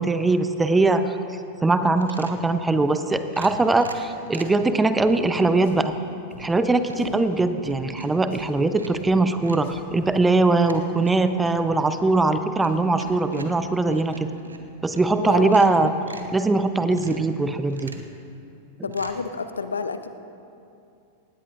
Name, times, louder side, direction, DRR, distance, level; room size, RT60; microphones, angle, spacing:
voice 1, 0.0-5.9 6.4-14.3 14.8-15.9 16.3-17.9, right 3 dB, 10° right, 10 dB, 0.7 m, -21 dB
sound 1, 2.0-2.5 3.3-4.6 5.3-5.6 6.1-6.6 6.9-9.1 9.4-9.7 10.6-15.1 15.4-16.4 16.9-17.3 17.7-18.1 18.9-19.1, right 3 dB, 80° right, 0.9 m, -43 dB
Drum, 5.0-5.1 5.6-5.9 6.3-6.4 7.0-7.2 7.6-7.8 8.3-8.6 9.0-9.1 9.6-10.2, left 2 dB, 60° left, 1.7 m, -46 dB
voice 2, 15.2-15.8 18.8-20.1, left 5 dB, 80° left, 10 dB, 0.6 m, -29 dB
18.5 x 17.0 x 2.5 m, 2.6 s
figure-of-eight pair, 95°, 0 cm